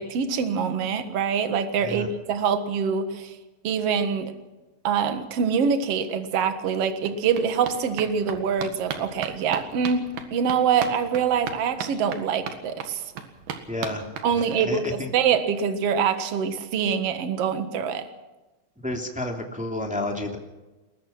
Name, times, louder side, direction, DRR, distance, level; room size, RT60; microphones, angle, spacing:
voice 1, 0.0-3.4 3.6-4.3 4.8-13.0 14.2-18.1, right 6 dB, 50° right, 9 dB, 2.1 m, -25 dB
sound 1, 6.1-6.2 6.4-14.9 15.2-15.3 15.6-15.7 15.9-16.0, right 7 dB, 70° right, 3.4 m, -38 dB
voice 2, 13.7-14.1 14.4-15.1 18.8-20.4, left 1 dB, 5° right, 2 dB, 2.0 m, -30 dB
21.5 x 20.5 x 6.0 m, 1.1 s
omnidirectional pair, 4.3 m